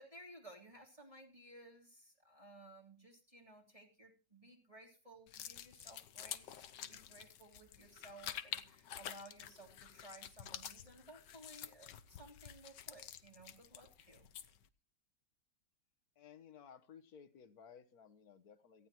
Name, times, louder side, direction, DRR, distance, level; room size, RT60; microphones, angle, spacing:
voice 1, 0.0-14.3, right 1 dB, 20° right, 3.4 m, -58 dB
sound 1, 5.3-14.7, left 10 dB, 75° left, 1.5 m, -49 dB
voice 2, 16.1-18.9, left 7 dB, 60° left, 1.6 m, -58 dB
18.0 x 14.0 x 2.9 m
omnidirectional pair, 1.9 m